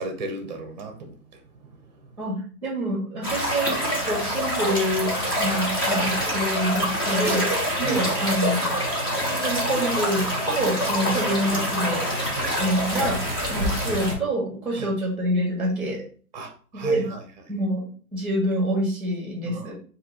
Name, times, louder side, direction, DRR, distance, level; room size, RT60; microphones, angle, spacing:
voice 1, 0.0-1.7 7.8-8.2 8.6-8.7 11.0-11.1 12.3-12.5 13.6-13.7 14.8-14.9 16.3-17.2 19.5-19.7, right 2 dB, 30° right, 0.7 m, -35 dB
voice 2, 2.2-7.5 7.8-8.7 9.3-12.1 12.6-16.0 16.7-17.1 17.5-19.8, equal, 5° right, 1.4 m, -27 dB
sound 1, 3.2-14.1, equal, 15° left, 0.5 m, -25 dB
3.3 x 2.7 x 4.0 m
hypercardioid pair, 145°, 46 cm